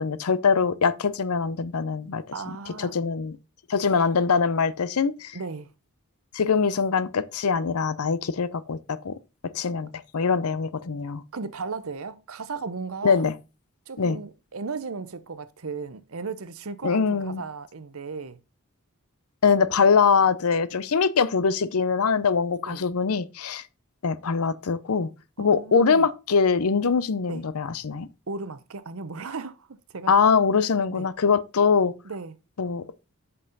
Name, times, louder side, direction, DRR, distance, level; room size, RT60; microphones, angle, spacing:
voice 1, 0.0-3.4 3.7-5.4 6.3-9.1 9.5-11.2 13.0-13.3 14.0-14.2 16.8-17.4 19.4-23.6 24.0-25.1 25.4-28.1 30.1-31.9 32.6-32.8, left 5 dB, 75° left, 0.6 m, -23 dB
voice 2, 2.3-3.0 5.3-5.7 11.3-13.2 13.9-18.4 22.7-22.8 25.4-26.1 27.3-27.4 28.3-29.7 29.9-30.1 30.9-31.1 32.0-32.3, right 4 dB, 65° right, 0.7 m, -35 dB
7.8 x 5.5 x 4.0 m
head